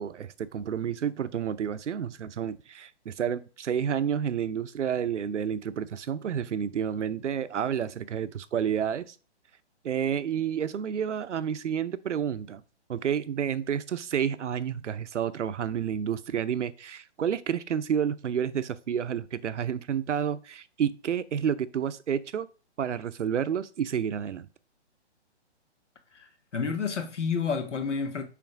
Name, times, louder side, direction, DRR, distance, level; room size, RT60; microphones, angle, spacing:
voice 1, 0.0-9.1 9.8-12.6 12.9-22.5 22.8-24.5, right 8 dB, 90° right, 0.7 m, -30 dB
voice 2, 26.1-28.2, left 5 dB, 85° left, 1.6 m, -30 dB
6.0 x 3.3 x 4.8 m
hypercardioid pair, 165°, 35 cm